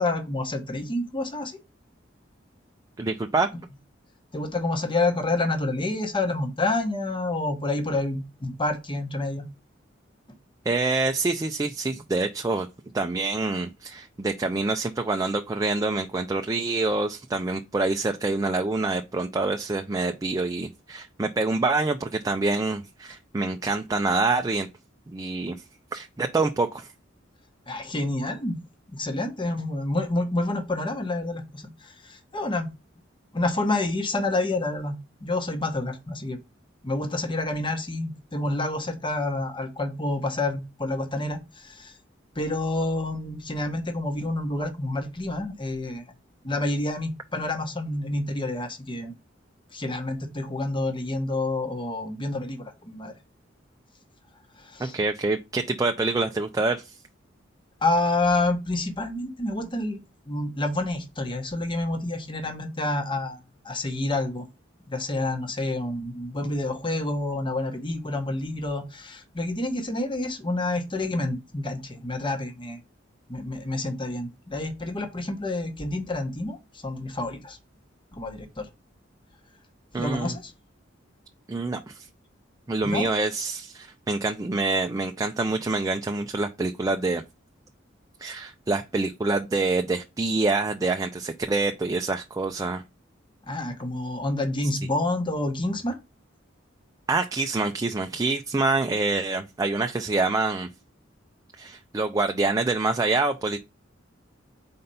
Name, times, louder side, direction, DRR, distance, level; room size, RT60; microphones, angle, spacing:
voice 1, 0.0-1.5 4.3-9.5 27.7-28.6 28.9-32.7 33.3-36.4 36.8-41.9 42.4-46.0 46.4-49.1 49.7-53.1 54.6-54.9 57.8-60.0 60.3-63.4 63.6-64.4 64.9-72.8 73.3-76.6 76.8-77.6 78.1-78.6 79.9-80.5 82.8-83.1 93.5-96.0, left 2 dB, 25° left, 1.1 m, -28 dB
voice 2, 3.0-3.5 10.7-12.7 12.9-24.7 25.1-25.6 25.9-26.9 54.8-57.0 79.9-80.3 81.5-82.1 82.7-87.2 88.2-92.8 97.1-100.7 101.6-103.6, right 3 dB, 20° right, 0.4 m, -26 dB
4.3 x 4.0 x 5.4 m
head